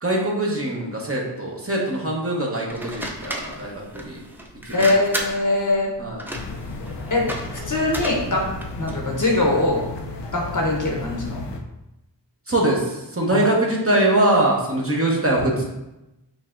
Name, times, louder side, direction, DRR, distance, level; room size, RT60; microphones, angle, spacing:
voice 1, 0.0-4.2 4.6-4.9 6.0-6.2 12.5-15.6, right 1 dB, 30° right, -3 dB, 1.0 m, -22 dB
sound 1, 2.7-9.0, equal, 5° right, 0.5 m, -34 dB
voice 2, 4.7-5.9 7.1-8.5 8.8-9.8 10.3-11.4 13.3-13.5, left 2 dB, 45° left, -1 dB, 0.9 m, -22 dB
sound 2, 6.3-11.6, left 2 dB, 75° left, 0.6 m, -34 dB
5.3 x 2.9 x 2.5 m, 0.96 s
wide cardioid pair, 50°, 43 cm